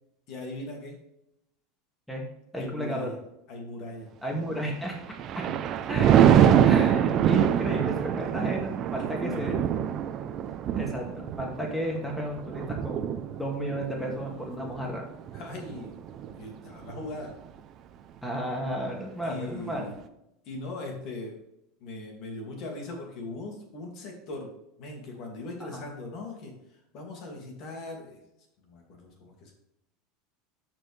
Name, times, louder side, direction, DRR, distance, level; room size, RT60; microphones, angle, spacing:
voice 1, 0.3-1.0 2.6-3.2 3.5-4.1 9.0-9.6 15.3-16.0 16.3-17.3 19.2-20.0 20.4-21.4 21.8-24.5 24.8-26.5 26.9-28.2 28.6-29.5, left 2 dB, 55° left, 1 dB, 2.5 m, -39 dB
voice 2, 2.5-3.1 4.2-5.0 5.4-5.5 5.9-9.6 10.8-15.1 18.2-19.9 25.6-25.8, equal, 5° left, -1 dB, 2.2 m, -33 dB
Thunder, 4.9-16.4 16.8-17.1, right 9 dB, 45° right, 0.7 m, -25 dB
12.5 x 4.6 x 3.4 m, 0.82 s
hypercardioid pair, 85°, 0 cm